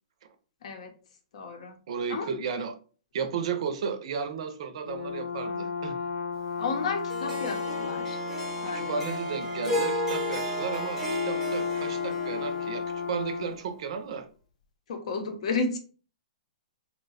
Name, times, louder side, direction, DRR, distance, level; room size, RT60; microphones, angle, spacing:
voice 1, 0.6-0.9 1.3-1.8 2.1-2.3 6.6-8.2 8.6-9.2 14.9-15.8, left 4 dB, 60° left, 0.7 m, -32 dB
voice 2, 1.9-2.8 3.1-6.0 8.7-14.3, right 6 dB, 55° right, 0.6 m, -34 dB
Brass instrument, 4.9-13.6, left 5 dB, 90° left, 0.4 m, -33 dB
Harp, 7.1-13.5, equal, 10° right, 0.7 m, -34 dB
2.8 x 2.2 x 4.0 m
hypercardioid pair, 160°, 4 cm